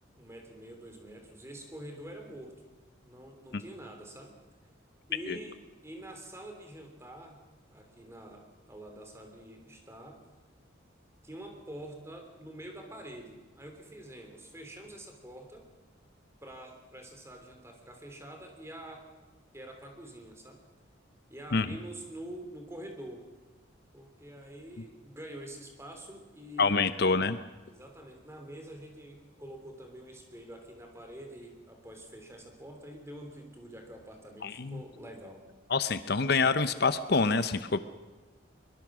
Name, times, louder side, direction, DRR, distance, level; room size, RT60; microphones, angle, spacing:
voice 1, 0.2-2.5 3.0-4.3 5.1-5.5 5.8-7.4 7.7-10.2 11.2-15.6 16.4-19.1 19.5-20.6 21.3-23.3 23.9-26.7 27.6-35.4, right 1 dB, 15° right, 4 dB, 3.3 m, -46 dB
voice 2, 26.6-27.4 34.4-34.8 35.7-37.8, left 4 dB, 55° left, 12 dB, 0.7 m, -26 dB
23.5 x 22.5 x 6.2 m, 1.2 s
head